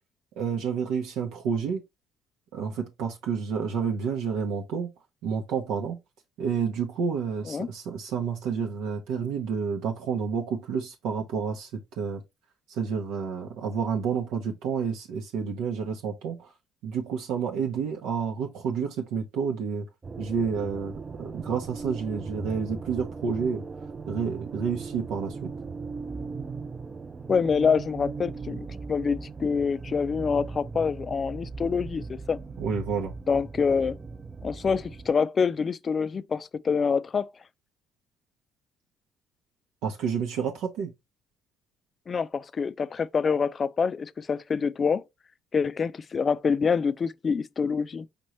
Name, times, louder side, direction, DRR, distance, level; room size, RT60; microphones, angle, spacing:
voice 1, 0.4-1.8 2.5-4.9 5.2-6.0 6.4-12.2 12.7-16.5 16.8-19.9 20.2-23.7 24.1-25.5 32.6-33.1 39.8-40.9, right 6 dB, 85° right, 0.8 m, -29 dB
sound 1, 20.0-35.1, right 4 dB, 25° right, 0.5 m, -38 dB
voice 2, 27.3-32.4 33.3-34.0 34.4-37.3 42.1-45.0 45.5-48.1, left 5 dB, 35° left, 0.3 m, -26 dB
5.2 x 3.0 x 3.0 m
cardioid pair, 105°, 0 cm